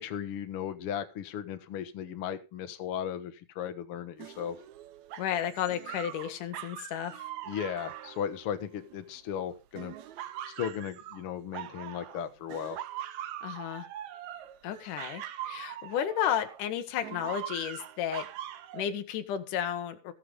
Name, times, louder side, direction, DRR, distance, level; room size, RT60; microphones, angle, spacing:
voice 1, 0.0-4.6 7.5-9.9 10.5-12.8, left 9 dB, 85° left, 8 dB, 1.2 m, -36 dB
sound 1, 4.2-9.2 9.8-12.2 12.5-16.6 17.0-18.8, right 11 dB, 80° right, 1.6 m, -42 dB
voice 2, 5.2-7.3 13.4-13.9 14.6-18.3 18.7-20.1, left 10 dB, 60° left, 8 dB, 2.6 m, -33 dB
19.0 x 6.9 x 5.3 m, 0.31 s
omnidirectional pair, 4.6 m